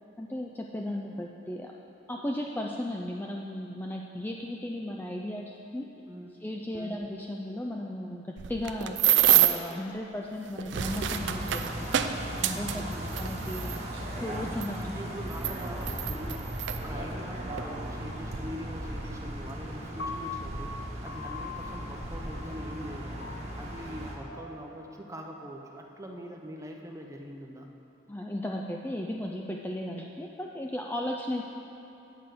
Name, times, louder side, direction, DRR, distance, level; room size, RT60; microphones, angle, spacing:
voice 1, 0.2-1.7 2.1-5.9 6.4-11.9 12.4-12.8 13.2-14.8 28.1-31.4, left 1 dB, 10° left, 0 dB, 0.3 m, -35 dB
voice 2, 6.1-6.4 6.7-7.0 12.7-13.1 14.8-27.7, equal, 15° right, 2 dB, 0.7 m, -43 dB
sound 1, 8.4-9.7 10.5-13.8 14.6-14.7 15.3-16.8 17.6-17.7 18.1-18.4, right 12 dB, 65° right, 0.4 m, -26 dB
sound 2, 10.7-24.2, right 1 dB, 35° right, 1.2 m, -37 dB
Piano, 20.0-26.2, left 4 dB, 75° left, 0.7 m, -43 dB
8.9 x 5.2 x 7.6 m, 2.9 s
head